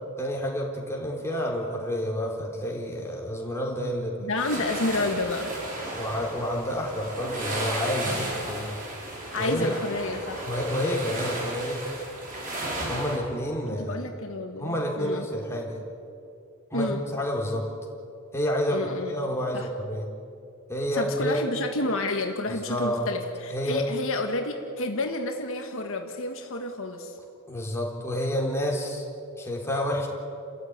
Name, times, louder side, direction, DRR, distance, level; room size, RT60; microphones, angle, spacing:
voice 1, 0.2-4.3 5.9-8.7 9.3-9.7 10.4-11.8 12.9-14.1 14.6-15.8 16.7-17.7 18.3-20.1 20.7-21.4 22.5-23.1 23.5-23.8 27.5-29.0 29.4-30.1, equal, 10° left, -1 dB, 4.0 m, -29 dB
voice 2, 4.2-5.5 9.1-10.5 13.7-15.3 16.7-17.0 18.7-19.1 19.5-19.7 20.9-27.1, left 2 dB, 65° left, 3 dB, 1.8 m, -30 dB
sound 1, 4.4-13.2, right 1 dB, 40° right, 5.6 m, -34 dB
29.0 x 14.0 x 9.7 m, 2.6 s
head